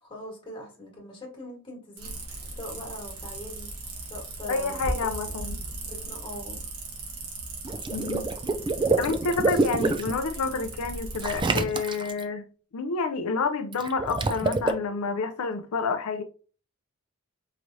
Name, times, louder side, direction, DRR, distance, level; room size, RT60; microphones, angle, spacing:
voice 1, 0.0-2.2 2.6-3.7 4.1-4.7 5.0-5.1 5.9-6.6, left 1 dB, 25° left, 1.6 m, -41 dB
sound 1, 2.0-11.4, right 2 dB, 75° right, 1.4 m, -37 dB
voice 2, 4.5-5.6 7.9-8.2 9.0-12.5 12.7-16.2, left 4 dB, 75° left, 0.5 m, -29 dB
Water / Liquid, 7.6-10.1 11.2-12.2 13.7-14.7, right 3 dB, 20° right, 0.4 m, -26 dB
4.8 x 3.1 x 2.6 m
head